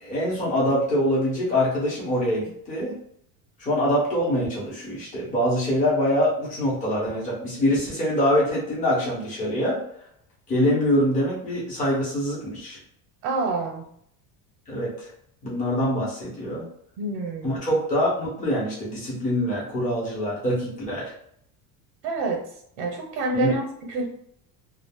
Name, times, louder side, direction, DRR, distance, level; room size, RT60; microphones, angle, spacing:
voice 1, 0.0-2.9 3.6-9.8 10.5-12.8 14.7-15.1 15.4-16.6 17.4-21.1 23.3-23.6, equal, 15° left, -7 dB, 0.8 m, -24 dB
voice 2, 13.2-13.9 17.0-17.6 22.0-22.5 22.8-24.1, right 2 dB, 85° right, 1 dB, 0.7 m, -27 dB
2.4 x 2.0 x 3.4 m, 0.70 s
cardioid pair, 170°, 44 cm